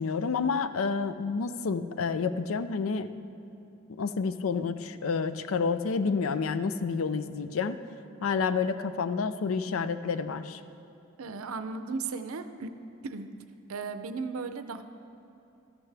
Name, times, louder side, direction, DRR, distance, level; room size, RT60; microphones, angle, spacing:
voice 1, 0.0-3.1 3.9-7.8 8.2-10.6, left 5 dB, 75° left, 12 dB, 0.4 m, -29 dB
voice 2, 11.2-12.8 13.0-13.3 13.7-14.8, right 4 dB, 85° right, 10 dB, 0.6 m, -36 dB
13.5 x 12.0 x 3.4 m, 2.6 s
head